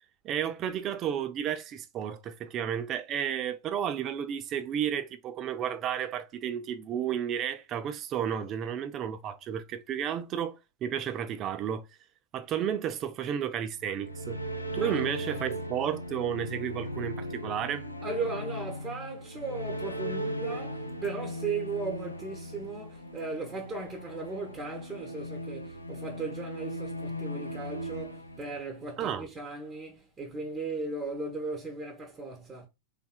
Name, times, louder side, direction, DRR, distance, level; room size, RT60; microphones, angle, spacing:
voice 1, 0.2-11.8 12.3-14.4 14.7-17.9 29.0-29.3, right 9 dB, 30° right, 0.6 m, -32 dB
sound 1, 13.8-29.0, equal, 85° left, 0.6 m, -38 dB
voice 2, 18.0-32.7, right 3 dB, 15° right, 1.0 m, -37 dB
4.2 x 3.3 x 2.3 m
figure-of-eight pair, 90°, 0 cm